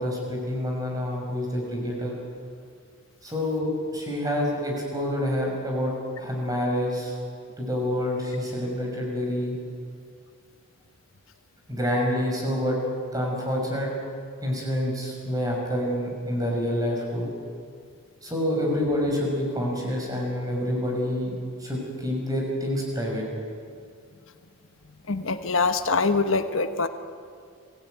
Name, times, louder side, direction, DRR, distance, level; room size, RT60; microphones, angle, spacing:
voice 1, 0.0-2.1 3.2-5.9 6.2-7.2 7.6-9.5 11.7-12.8 13.1-13.9 14.4-17.3 18.2-23.2, left 1 dB, 15° right, -1 dB, 5.9 m, -27 dB
voice 2, 25.1-26.9, left 4 dB, 70° left, 8 dB, 1.2 m, -24 dB
26.5 x 16.5 x 9.3 m, 2.2 s
head